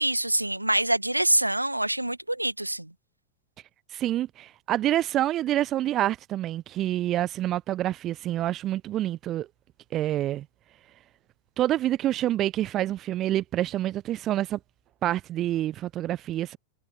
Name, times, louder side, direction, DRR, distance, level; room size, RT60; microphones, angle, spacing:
voice 1, 0.0-2.9, right 1 dB, 85° right, 2.0 m, -25 dB
voice 2, 3.9-9.5 9.9-10.4 11.6-14.6 15.0-16.6, right 13 dB, 30° right, 0.7 m, -27 dB
figure-of-eight pair, 90°, 0 cm